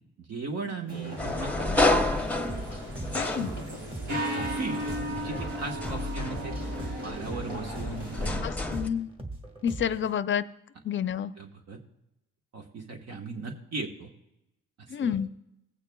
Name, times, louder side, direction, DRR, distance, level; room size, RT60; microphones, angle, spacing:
voice 1, 0.2-2.1 3.7-3.8 4.1-6.6 7.0-8.5 11.4-11.8 12.5-14.1 14.8-15.2, right 3 dB, 60° right, 3 dB, 1.4 m, -38 dB
sound 1, 0.9-8.4, equal, 80° right, 4.3 m, -36 dB
sound 2, 1.2-4.1 4.7-8.9, left 2 dB, 5° left, 0.9 m, -30 dB
sound 3, 2.5-10.1, right 2 dB, 20° right, 1.6 m, -41 dB
voice 2, 3.1-3.5 8.4-9.1 9.6-10.4 10.8-11.3 14.9-15.3, left 8 dB, 40° left, 13 dB, 0.6 m, -29 dB
18.5 x 8.7 x 2.3 m, 0.88 s
cardioid pair, 90°, 30 cm